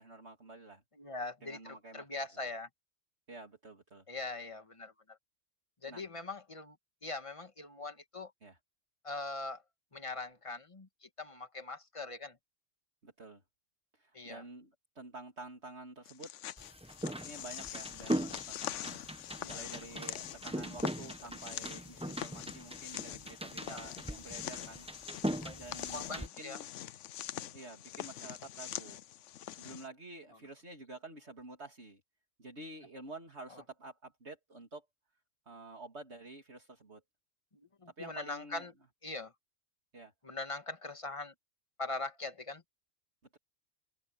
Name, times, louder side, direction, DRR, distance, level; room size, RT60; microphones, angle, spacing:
voice 1, 0.0-0.8 1.4-2.1 3.3-4.0 5.9-6.1 8.4-8.6 13.0-13.4 13.9-16.8 17.0-19.0 19.5-24.9 25.5-26.7 27.5-29.0 29.6-32.0 32.4-34.8 35.5-37.0 38.0-38.7 39.9-40.1, right 2 dB, 55° right, 3.1 m, -50 dB
voice 2, 1.0-2.7 4.1-5.2 5.8-6.8 7.0-8.3 9.0-9.6 9.9-12.4 14.1-14.4 19.4-19.6 20.0-20.1 23.6-23.8 25.4-26.6 33.5-33.6 37.5-38.7 39.0-39.3 40.2-41.3 41.8-42.6, left 3 dB, 25° left, 1.7 m, -42 dB
sound 1, 16.1-29.9, left 12 dB, 70° left, 0.9 m, -44 dB
sound 2, 16.6-26.3, right 1 dB, 5° right, 1.2 m, -40 dB
omnidirectional pair, 1.3 m